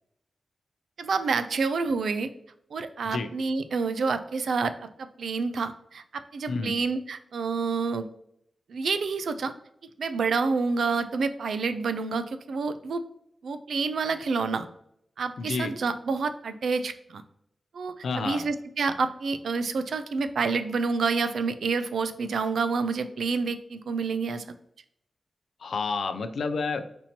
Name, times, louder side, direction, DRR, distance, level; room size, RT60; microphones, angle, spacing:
voice 1, 1.0-2.3 2.7-4.7 5.0-8.1 8.7-9.5 10.0-13.0 13.4-14.7 15.2-17.2 17.7-24.4, right 4 dB, 85° right, 10 dB, 0.4 m, -28 dB
voice 2, 15.4-15.7 18.0-18.5 25.6-26.9, left 4 dB, 80° left, 9 dB, 0.4 m, -30 dB
4.4 x 4.2 x 2.8 m, 0.73 s
wide cardioid pair, 115°, 0 cm